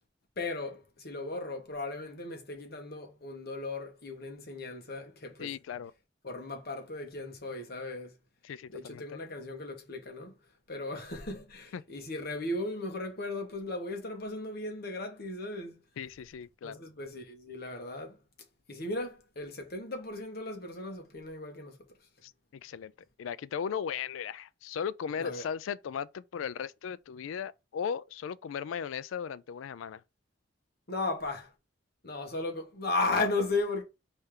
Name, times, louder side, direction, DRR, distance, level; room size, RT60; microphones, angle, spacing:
voice 1, 0.4-5.5 6.2-8.1 8.7-10.4 10.7-15.8 16.6-18.2 18.7-21.8 25.2-25.5 30.9-31.5 32.0-33.8, left 2 dB, 55° left, 1.3 m, -36 dB
voice 2, 5.4-5.9 8.4-9.0 11.7-11.8 16.0-16.8 22.2-22.9 23.2-30.0, left 7 dB, 85° left, 0.3 m, -37 dB
4.2 x 3.3 x 3.7 m
head